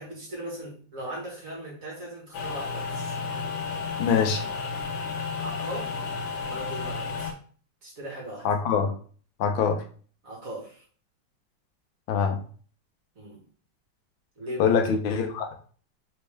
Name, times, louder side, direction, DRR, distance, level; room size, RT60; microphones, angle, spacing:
voice 1, 0.0-3.2 4.3-4.4 5.4-6.1 6.4-7.3 7.8-8.5 10.2-10.8 13.2-13.4 14.4-14.8, right 1 dB, 45° right, -3 dB, 2.0 m, -38 dB
sound 1, 2.3-7.3, left 5 dB, 65° left, 1.4 m, -32 dB
voice 2, 4.0-4.4 8.4-8.9 9.4-9.8 12.1-12.4 14.6-15.5, left 6 dB, 85° left, 5 dB, 1.5 m, -24 dB
4.3 x 3.6 x 3.3 m, 0.43 s
omnidirectional pair, 2.1 m